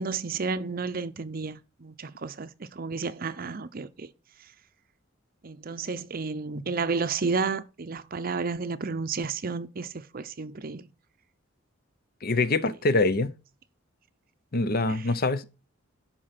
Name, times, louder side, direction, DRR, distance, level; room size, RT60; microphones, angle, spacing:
voice 1, 0.0-4.1 5.4-10.9 14.9-15.1, right 4 dB, 45° right, 0.6 m, -32 dB
voice 2, 12.2-13.3 14.5-15.4, left 3 dB, 45° left, 0.7 m, -24 dB
11.5 x 4.5 x 5.9 m
head